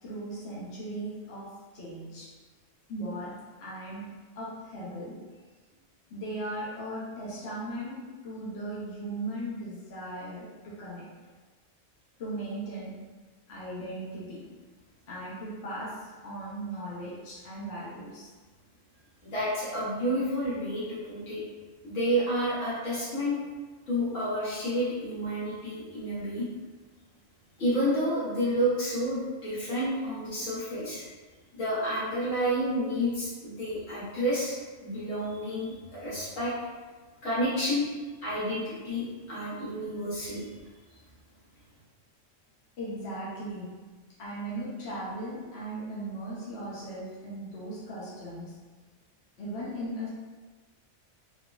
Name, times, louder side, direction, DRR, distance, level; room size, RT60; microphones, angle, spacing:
voice 1, 0.0-2.3 2.9-4.1 4.4-5.2 6.1-11.1 12.2-13.0 13.5-14.4 15.1-18.3 24.1-24.2 42.8-43.7 44.2-48.6 49.4-50.1, right 1 dB, 60° left, -8 dB, 1.0 m, -38 dB
voice 2, 19.2-21.4 21.8-23.4 23.9-26.4 27.6-31.0 31.5-34.6 34.8-36.5 37.2-37.9 38.2-40.5, equal, 80° left, -9 dB, 1.4 m, -30 dB
3.6 x 2.0 x 2.3 m, 1.3 s
omnidirectional pair, 1.3 m